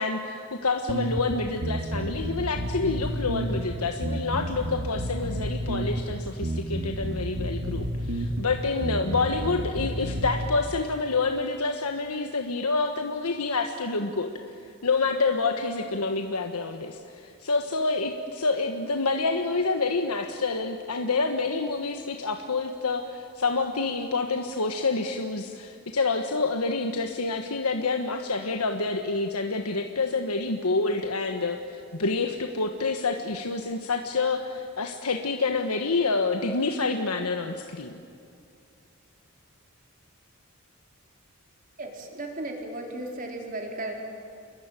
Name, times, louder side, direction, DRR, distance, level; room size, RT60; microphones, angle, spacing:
voice 1, 0.0-38.0, left 3 dB, 90° left, 5 dB, 1.4 m, -28 dB
sound 1, 0.9-10.5, right 1 dB, 65° right, 1.9 m, -31 dB
voice 2, 41.8-43.9, right 2 dB, 40° right, 1 dB, 4.1 m, -35 dB
29.0 x 22.5 x 9.2 m, 2.5 s
head